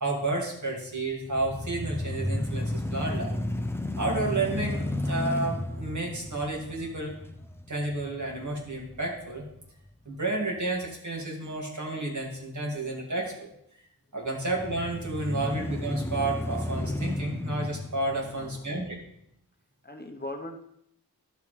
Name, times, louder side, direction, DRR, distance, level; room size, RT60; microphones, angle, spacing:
voice 1, 0.0-3.4 4.0-7.2 7.7-9.4 10.1-13.5 14.1-19.0, right 2 dB, 50° right, -1 dB, 2.3 m, -31 dB
sound 1, 1.2-9.4 9.9-10.0 14.5-19.0, left 1 dB, 5° left, 0.5 m, -33 dB
voice 2, 18.2-18.9 19.8-20.6, left 1 dB, 25° left, 3 dB, 0.9 m, -40 dB
12.0 x 6.8 x 3.3 m, 0.76 s
wide cardioid pair, 80°, 38 cm